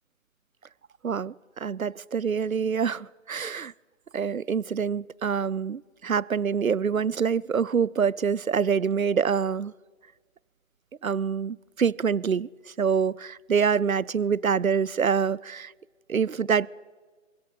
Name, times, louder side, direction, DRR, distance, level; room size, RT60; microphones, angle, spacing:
voice 1, 1.0-3.7 4.1-9.7 11.0-12.5 12.8-15.7 16.1-16.7, right 6 dB, 85° right, 25 dB, 0.7 m, -26 dB
28.0 x 23.0 x 4.8 m, 1.5 s
figure-of-eight pair, 145°, 40 cm